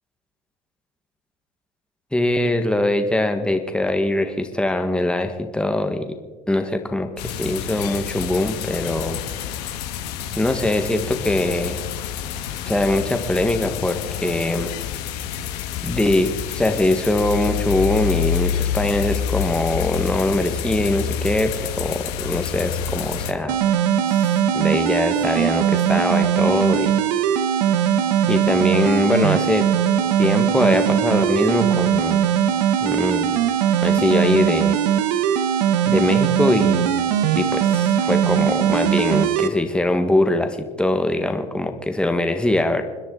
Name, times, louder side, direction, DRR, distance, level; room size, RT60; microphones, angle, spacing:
voice 1, 2.1-6.1 6.5-9.2 10.4-11.8 12.7-14.7 15.8-23.6 24.1-26.9 28.3-29.7 30.2-32.2 32.8-33.3 33.8-34.8 35.9-36.9 37.3-42.8, left 1 dB, 5° left, 6 dB, 1.6 m, -22 dB
sound 1, 7.2-23.3, left 9 dB, 80° left, 1.7 m, -28 dB
sound 2, 23.5-39.5, right 9 dB, 85° right, 1.1 m, -20 dB
28.5 x 10.0 x 4.0 m, 1.3 s
supercardioid pair, 100°, 20 cm